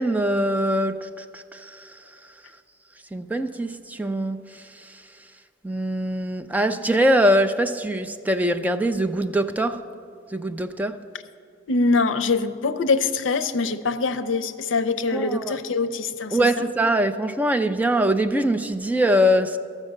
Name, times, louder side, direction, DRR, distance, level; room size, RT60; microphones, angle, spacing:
voice 1, 0.0-1.9 3.1-4.4 5.6-9.8 10.3-11.0 15.1-15.6 16.3-19.6, right 1 dB, 10° right, 8 dB, 0.4 m, -22 dB
voice 2, 11.7-16.7, left 3 dB, 75° left, 11 dB, 0.5 m, -24 dB
12.5 x 7.3 x 6.5 m, 2.3 s
head